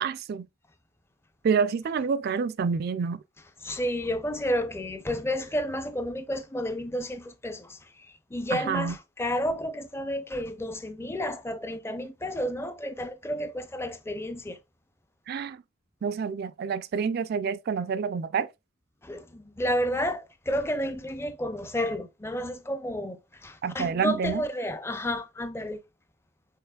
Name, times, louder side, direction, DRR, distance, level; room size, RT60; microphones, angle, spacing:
voice 1, 0.0-0.5 1.4-3.2 8.5-9.0 15.3-15.6 16.0-18.5 23.6-24.4, right 6 dB, 50° right, 0.3 m, -28 dB
voice 2, 3.6-14.6 19.0-25.8, equal, 10° left, 0.4 m, -31 dB
5.6 x 3.9 x 2.3 m
head